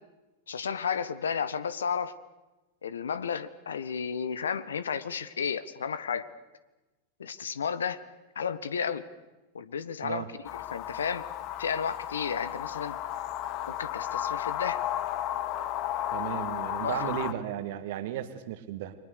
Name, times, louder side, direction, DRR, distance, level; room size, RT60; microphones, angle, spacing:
voice 1, 0.5-2.1 2.8-6.3 7.2-8.0 8.3-9.0 9.5-10.2 10.5-11.2 11.6-13.0 13.7-14.8 16.8-17.1, left 7 dB, 70° left, 15 dB, 1.3 m, -32 dB
sound 1, 10.4-17.3, left 12 dB, 40° left, 1.3 m, -33 dB
voice 2, 16.1-19.0, right 11 dB, 50° right, 10 dB, 2.0 m, -35 dB
29.5 x 23.0 x 6.8 m, 1.1 s
figure-of-eight pair, 90°, 0 cm